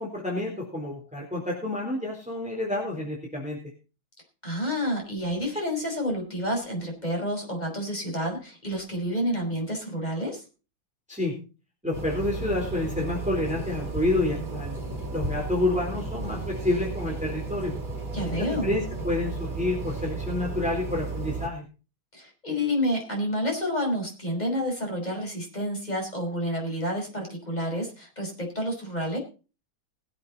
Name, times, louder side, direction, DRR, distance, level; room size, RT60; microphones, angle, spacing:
voice 1, 0.0-3.6 11.1-11.3 11.8-14.8 15.1-17.7 18.6-21.6, left 2 dB, 5° right, -1 dB, 3.7 m, -29 dB
voice 2, 4.4-10.4 18.1-18.8 22.1-29.2, equal, 20° left, 1 dB, 5.5 m, -29 dB
sound 1, 11.9-21.5, right 3 dB, 25° right, 2.5 m, -34 dB
21.5 x 8.0 x 4.1 m, 0.33 s
omnidirectional pair, 2.2 m